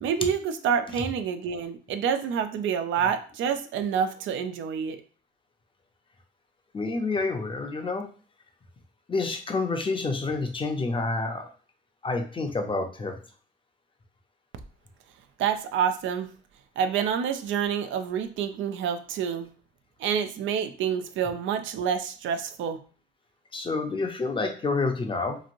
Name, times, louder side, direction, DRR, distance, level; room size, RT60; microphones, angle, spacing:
voice 1, 0.0-5.0 15.4-16.3 16.8-19.5 20.0-22.8, right 7 dB, 75° right, 9 dB, 0.4 m, -28 dB
voice 2, 6.7-8.1 9.1-11.5 12.0-13.2 23.5-25.4, left 3 dB, 25° left, 4 dB, 0.6 m, -28 dB
3.0 x 2.5 x 2.5 m, 0.39 s
cardioid pair, 90°, 20 cm